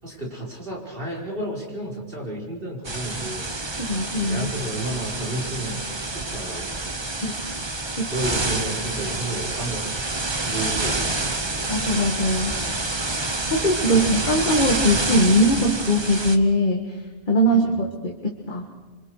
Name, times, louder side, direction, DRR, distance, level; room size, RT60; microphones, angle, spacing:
voice 1, 0.0-3.5 4.3-7.0 8.1-9.9 10.4-11.7 13.9-14.1 17.4-17.8, right 1 dB, 55° right, -3 dB, 5.3 m, -32 dB
sound 1, 2.8-16.4, right 2 dB, 25° right, 1.1 m, -28 dB
voice 2, 3.9-4.5 7.2-7.3 8.0-8.1 11.7-12.6 13.5-17.0 17.3-18.7, equal, 50° left, 1 dB, 2.0 m, -21 dB
28.0 x 25.0 x 4.9 m, 1.3 s
omnidirectional pair, 1.1 m